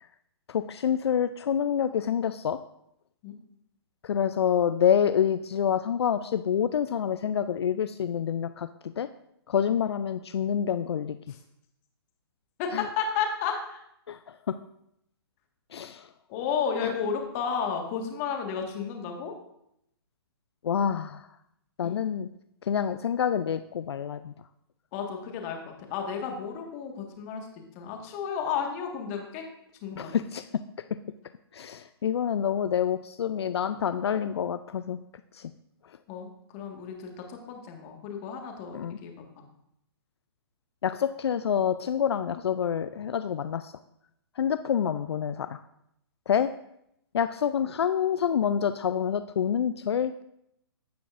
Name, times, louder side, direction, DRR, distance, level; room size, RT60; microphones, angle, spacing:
voice 1, 0.5-2.6 4.0-9.1 9.5-11.2 12.7-12.8 14.1-14.6 15.7-16.1 16.8-16.9 20.6-21.3 21.8-22.3 22.6-24.3 29.9-30.5 31.5-35.0 35.3-35.5 38.7-39.0 40.8-43.7 44.4-45.6 46.3-46.5 47.1-50.2, left 8 dB, 75° left, 11 dB, 0.4 m, -27 dB
voice 2, 12.6-13.8 16.3-19.3 20.7-20.9 21.8-22.0 24.9-27.5 27.7-29.4 29.8-30.2 36.1-39.2, left 6 dB, 35° left, 3 dB, 1.6 m, -32 dB
15.0 x 5.9 x 2.5 m, 0.78 s
hypercardioid pair, 140°, 14 cm